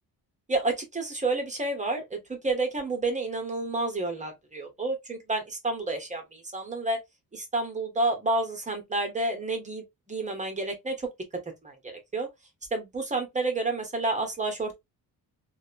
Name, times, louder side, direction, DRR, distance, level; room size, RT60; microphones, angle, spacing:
voice 1, 0.5-7.0 7.3-11.0 11.6-12.3 12.7-14.8, right 2 dB, 20° right, 0.8 m, -30 dB
2.8 x 2.2 x 2.4 m
wide cardioid pair, 135°, 38 cm